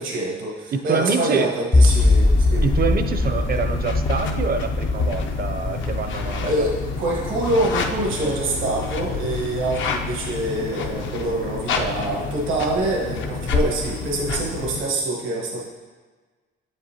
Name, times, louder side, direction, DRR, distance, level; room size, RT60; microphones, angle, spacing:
voice 1, 0.0-2.6 6.4-15.6, right 2 dB, 80° right, -3 dB, 1.3 m, -25 dB
voice 2, 0.7-1.5 2.6-6.7, right 4 dB, 50° right, 8 dB, 0.5 m, -25 dB
sound 1, 1.7-8.9, left 2 dB, 20° left, 0.4 m, -21 dB
sound 2, 1.9-14.8, left 4 dB, 75° left, 0.6 m, -29 dB
7.4 x 5.2 x 2.8 m, 1.4 s
cardioid pair, 90°, 20 cm